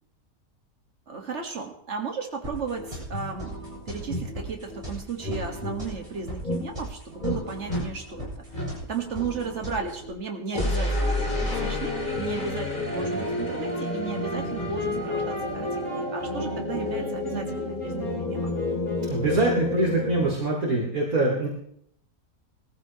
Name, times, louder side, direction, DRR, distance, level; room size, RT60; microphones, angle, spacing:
voice 1, 1.1-3.6 3.9-8.4 8.9-18.5, right 5 dB, 45° right, 3 dB, 2.2 m, -35 dB
sound 1, 2.4-10.1, right 1 dB, 20° right, 8.2 m, -39 dB
sound 2, 3.1-3.3 4.1-4.3 5.2-5.8 6.4-6.6 7.2-7.4 7.7-7.9 8.5-8.7 10.5-20.3, left 1 dB, 30° left, 3.3 m, -29 dB
Wind instrument woodwind instrument, 10.9-19.3, left 4 dB, 55° left, 5.8 m, -37 dB
voice 2, 19.1-21.5, right 2 dB, 60° right, -3 dB, 3.0 m, -24 dB
20.0 x 14.5 x 3.1 m, 0.66 s
omnidirectional pair, 1.7 m